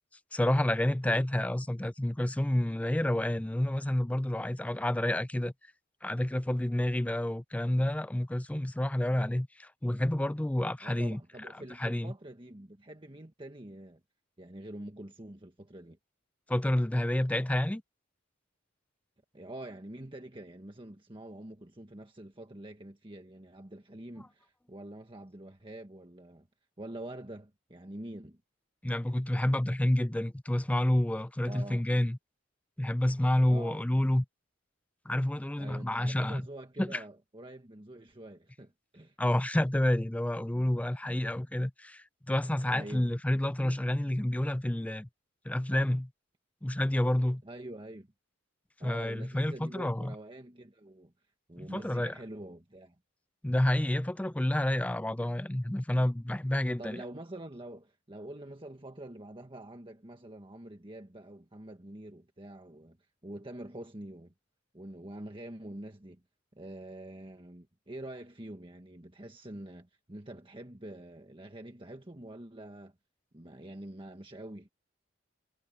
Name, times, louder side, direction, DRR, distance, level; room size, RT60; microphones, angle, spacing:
voice 1, 0.3-5.5 6.0-11.2 11.8-12.1 16.5-17.8 28.8-32.2 32.8-34.2 35.1-36.4 36.8-37.0 39.2-45.1 45.5-46.1 46.6-47.4 48.8-50.1 51.6-52.1 53.4-57.0, left 1 dB, 5° left, 0.4 m, -29 dB
voice 2, 10.8-14.0 14.4-16.0 19.3-26.5 26.8-28.4 31.4-31.9 33.5-33.9 35.6-39.2 41.1-41.3 42.7-43.1 43.6-43.8 47.4-48.1 48.8-51.1 51.5-53.0 56.8-63.0 63.2-64.3 64.7-66.2 66.5-73.0 73.3-74.7, right 1 dB, 25° right, 1.6 m, -46 dB
head